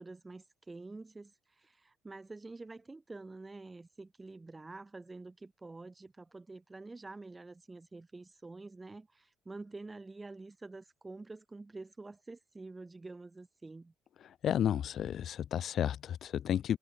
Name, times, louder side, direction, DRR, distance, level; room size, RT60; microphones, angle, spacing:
voice 1, 0.0-13.9, right 3 dB, 15° right, 2.2 m, -48 dB
voice 2, 14.4-16.8, left 10 dB, 50° left, 0.4 m, -32 dB
cardioid pair, 130°, 0 cm